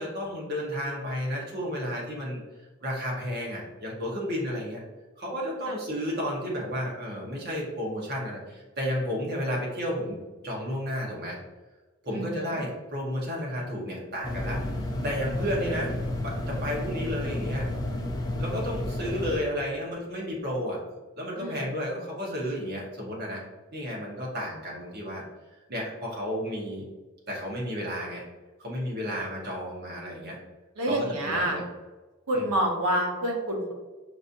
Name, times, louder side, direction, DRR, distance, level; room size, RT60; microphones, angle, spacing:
voice 1, 0.0-2.4 2.8-4.8 5.2-10.2 10.4-11.4 12.0-16.0 16.2-17.7 18.4-20.8 21.2-23.4 23.7-25.2 25.7-26.8 27.3-28.2 28.6-30.4 30.9-31.6 32.3-32.5, equal, 45° right, -3 dB, 1.0 m, -32 dB
voice 2, 12.1-12.6 21.4-21.7 30.8-31.6 32.3-33.7, right 1 dB, 85° right, 0 dB, 0.9 m, -28 dB
sound 1, 14.2-19.4, left 1 dB, 15° left, 0.4 m, -31 dB
5.1 x 2.7 x 2.5 m, 1.2 s
head